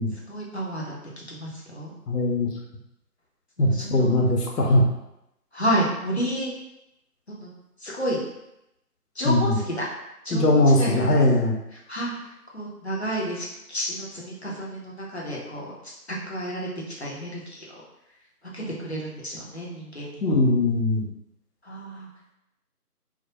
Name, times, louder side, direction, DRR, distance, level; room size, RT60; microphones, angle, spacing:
voice 1, 0.1-1.9 3.6-4.2 5.5-6.5 7.3-7.5 7.8-8.2 9.2-9.9 10.2-11.1 11.7-12.1 12.5-15.7 16.1-16.7 17.0-17.7 18.5-20.4 21.6-22.1, equal, 45° left, -4 dB, 0.5 m, -31 dB
voice 2, 2.1-2.5 3.6-4.8 9.3-9.6 10.3-11.5 20.2-21.1, left 2 dB, 80° left, 0 dB, 0.7 m, -20 dB
2.1 x 2.0 x 2.9 m, 0.86 s
figure-of-eight pair, 170°, 47 cm